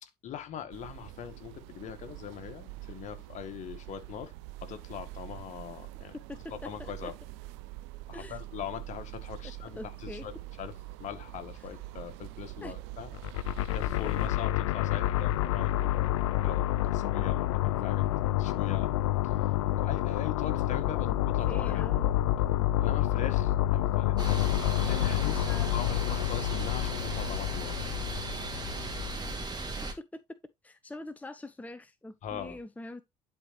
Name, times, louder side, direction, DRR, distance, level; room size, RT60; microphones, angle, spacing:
voice 1, 0.0-4.3 4.6-6.2 6.5-7.1 8.1-13.1 13.7-18.1 18.4-18.9 19.2-19.5 19.8-21.9 22.8-24.6 24.9-27.9 32.2-32.6, left 8 dB, 50° left, 1.8 m, -41 dB
sound 1, 0.7-14.3, right 16 dB, 70° right, 0.6 m, -45 dB
voice 2, 6.3-7.1 8.1-8.4 9.8-10.2 12.6-12.7 21.5-22.1 25.2-25.7 30.6-33.0, left 2 dB, 10° left, 1.0 m, -43 dB
sound 2, 13.1-29.3, left 13 dB, 80° left, 0.5 m, -28 dB
sound 3, 24.2-29.9, right 2 dB, 25° right, 2.3 m, -37 dB
11.0 x 4.9 x 3.0 m
hypercardioid pair, 65°, 16 cm